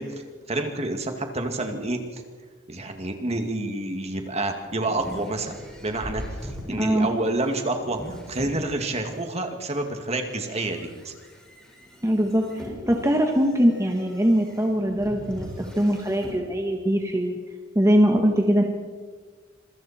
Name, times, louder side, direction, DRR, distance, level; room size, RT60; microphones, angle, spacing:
voice 1, 0.5-2.2 2.7-11.1, right 2 dB, 35° right, 5 dB, 2.3 m, -29 dB
sound 1, 4.4-9.2 9.8-16.4, equal, 5° left, 5.6 m, -41 dB
voice 2, 6.8-7.1 12.0-17.4 17.8-18.6, equal, 15° right, 2 dB, 1.7 m, -22 dB
26.5 x 23.0 x 4.4 m, 1.5 s
head